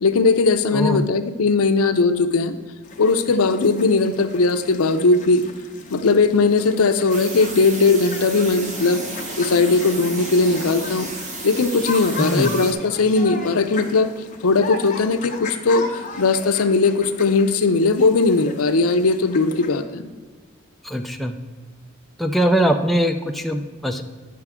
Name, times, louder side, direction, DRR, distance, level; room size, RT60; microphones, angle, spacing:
voice 1, 0.0-2.6 3.0-5.4 5.9-9.0 9.4-11.1 11.4-14.1 14.4-15.9 16.2-20.1, left 3 dB, 85° left, 9 dB, 0.6 m, -18 dB
voice 2, 0.7-1.1 12.2-12.6 20.8-21.4 22.2-24.0, right 1 dB, ahead, 4 dB, 0.4 m, -21 dB
sound 1, 2.8-19.8, left 3 dB, 35° left, 0.9 m, -36 dB
JK Bullroarer, 7.1-12.7, right 2 dB, 35° right, 1.0 m, -34 dB
9.4 x 5.8 x 3.6 m, 1.4 s
head